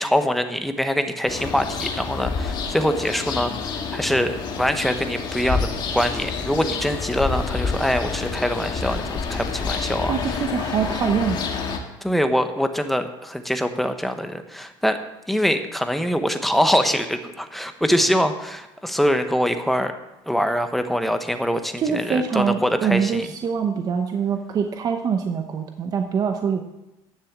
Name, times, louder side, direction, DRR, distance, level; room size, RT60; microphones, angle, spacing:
voice 1, 0.0-10.1 12.0-15.0 15.3-19.9 20.3-23.3, equal, ahead, 7 dB, 0.9 m, -24 dB
sound 1, 1.3-11.8, left 5 dB, 50° left, 1.7 m, -28 dB
voice 2, 10.1-11.4 21.8-26.6, right 6 dB, 40° right, 5 dB, 0.9 m, -24 dB
10.0 x 7.0 x 7.3 m, 0.97 s
cardioid pair, 125°, 10 cm